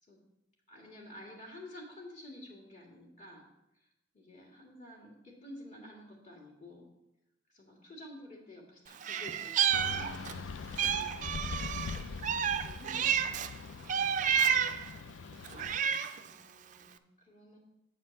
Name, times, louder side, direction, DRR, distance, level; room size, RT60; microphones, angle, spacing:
voice 1, 0.7-3.5 3.7-3.9 4.1-6.9 7.5-10.1 10.9-11.4 12.6-14.1 16.1-17.6, left 1 dB, 35° left, -3 dB, 2.0 m, -51 dB
Meow, 9.0-10.4 10.8-13.5 13.9-14.9 15.4-16.3, right 8 dB, 40° right, 0.3 m, -30 dB
sound 1, 9.7-15.8, left 5 dB, 75° left, 0.4 m, -42 dB
8.4 x 4.4 x 7.1 m, 0.86 s
head